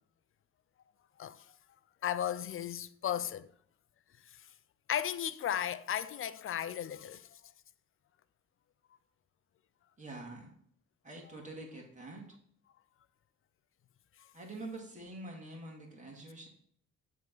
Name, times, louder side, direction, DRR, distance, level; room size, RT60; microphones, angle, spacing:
voice 1, 2.0-3.5 4.3-4.4 4.9-7.4, left 10 dB, 45° left, 0.5 m, -35 dB
voice 2, 10.0-10.5 11.0-12.4 14.3-16.5, right 2 dB, 25° right, 2.2 m, -46 dB
7.4 x 3.7 x 6.1 m
cardioid pair, 90°, 30 cm